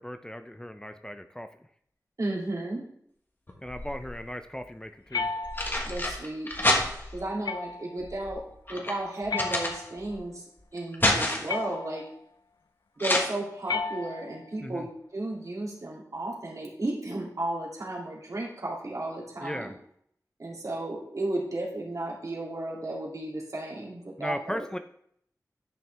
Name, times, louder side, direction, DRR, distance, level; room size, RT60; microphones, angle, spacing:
voice 1, 0.0-1.5 3.6-5.3 14.6-14.9 19.4-19.8 24.2-24.8, equal, 10° left, 8 dB, 0.4 m, -37 dB
voice 2, 2.2-2.8 5.8-6.5 7.1-8.4 8.7-10.4 10.7-12.0 13.0-19.7 20.4-24.6, right 1 dB, 60° right, -3 dB, 2.4 m, -34 dB
sound 1, 3.5-4.3 5.2-7.3 8.0-10.2 10.6-11.6 13.0-13.2, left 1 dB, 30° left, 1.4 m, -28 dB
sound 2, 5.1-6.0 7.4-8.0 9.3-10.2 11.5-12.2 13.7-14.5, left 4 dB, 80° left, 0.4 m, -34 dB
10.5 x 5.7 x 3.3 m, 0.70 s
wide cardioid pair, 70°, 7 cm